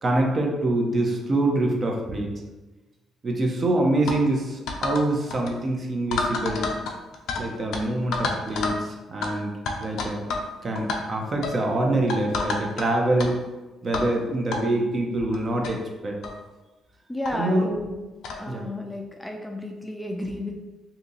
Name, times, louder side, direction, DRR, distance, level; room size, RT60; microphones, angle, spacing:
voice 1, 0.0-2.3 3.2-6.7 7.4-9.5 9.8-10.2 10.6-13.4 13.8-16.1 17.3-17.7 18.5-18.7 20.2-20.3, right 1 dB, 40° right, 1 dB, 0.7 m, -25 dB
sound 1, 4.1-4.2 4.7-5.0 5.3-5.5 6.1-7.4 7.7-7.8 8.1-8.8 9.2-9.3 9.7-10.5 10.7-11.0 11.4-11.6 12.1-12.8 13.2-13.3 13.9-14.1 14.5-14.6 15.3-15.4 15.6-15.7 16.2-16.4 17.2-17.3 18.2-18.4, left 3 dB, 80° left, 0.5 m, -28 dB
voice 2, 17.1-17.9 18.4-20.5, left 1 dB, 5° left, 2 dB, 0.4 m, -32 dB
2.7 x 2.7 x 3.9 m, 1.1 s
cardioid pair, 90°, 0 cm